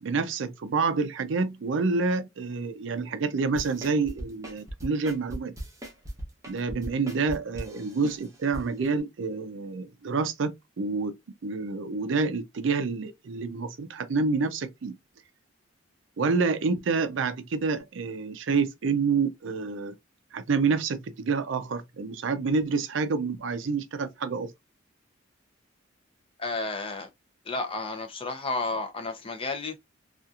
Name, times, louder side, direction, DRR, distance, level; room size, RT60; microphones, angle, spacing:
voice 1, 0.0-5.5 6.5-11.1 11.4-14.9 16.2-19.9 20.3-24.5, right 4 dB, 65° right, 0.4 m, -28 dB
sound 1, 3.5-8.6 9.0-9.1, right 1 dB, 15° right, 0.8 m, -38 dB
voice 2, 26.4-27.1 27.5-29.8, left 3 dB, 25° left, 0.5 m, -32 dB
2.8 x 2.4 x 2.3 m
head